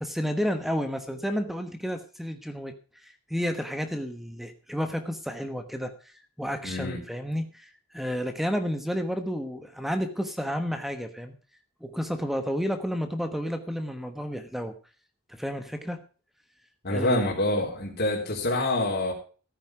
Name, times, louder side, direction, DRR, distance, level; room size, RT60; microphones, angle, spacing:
voice 1, 0.0-2.7 3.0-11.3 11.8-14.7 15.3-16.0 16.9-17.2, equal, ahead, 8 dB, 1.1 m, -31 dB
voice 2, 6.6-7.0 16.8-19.1, left 1 dB, 45° left, -3 dB, 3.4 m, -26 dB
15.0 x 9.1 x 4.9 m, 0.37 s
head